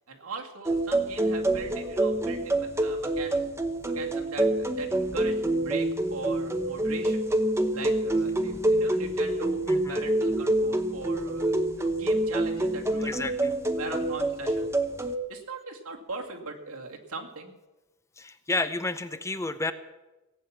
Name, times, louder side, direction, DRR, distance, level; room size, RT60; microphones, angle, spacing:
voice 1, 0.1-3.4 3.9-7.2 7.7-13.2 13.8-14.7 15.3-17.5, right 3 dB, 90° right, 1 dB, 2.3 m, -39 dB
sound 1, 0.7-15.2, right 1 dB, 10° right, 0.9 m, -27 dB
voice 2, 9.7-10.0 13.0-13.5 18.2-19.7, left 2 dB, 15° left, 11 dB, 0.7 m, -31 dB
18.0 x 8.6 x 7.3 m, 1.1 s
head